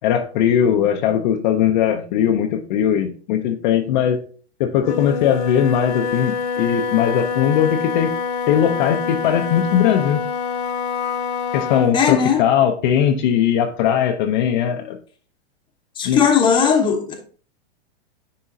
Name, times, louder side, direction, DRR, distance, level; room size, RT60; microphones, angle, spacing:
voice 1, 0.0-4.2 4.6-8.1 8.5-10.2 11.5-15.0 16.0-16.2, left 9 dB, 45° left, 0.6 m, -19 dB
Wind instrument woodwind instrument, 4.8-12.0, left 6 dB, 80° left, 1.2 m, -26 dB
voice 2, 11.9-12.4 16.0-17.1, left 6 dB, 15° left, 0.9 m, -17 dB
9.6 x 3.7 x 2.7 m
supercardioid pair, 150°, 33 cm